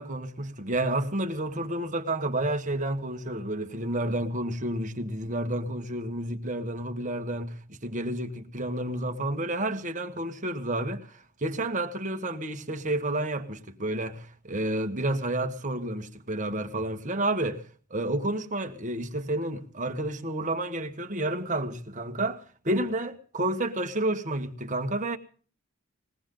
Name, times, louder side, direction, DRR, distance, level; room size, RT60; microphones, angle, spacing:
voice 1, 0.0-17.6 17.9-25.2, right 1 dB, 35° right, 1.4 m, -30 dB
21.5 x 17.5 x 3.8 m
head